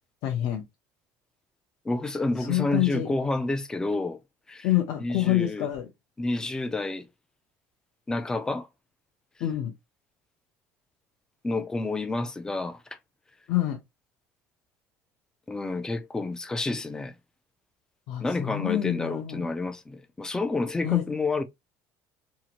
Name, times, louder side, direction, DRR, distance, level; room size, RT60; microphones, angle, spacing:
voice 1, 0.2-0.6 2.4-3.1 4.6-5.9 9.4-9.7 13.5-13.8 18.1-19.5 20.8-21.0, left 14 dB, 65° left, 0.6 m, -27 dB
voice 2, 1.8-4.2 4.5-4.7 5.0-5.7 6.2-7.1 8.1-8.7 11.4-13.0 15.5-17.1 18.2-21.4, left 2 dB, 10° left, 0.3 m, -29 dB
2.8 x 2.4 x 2.8 m
cardioid pair, 155°, 7 cm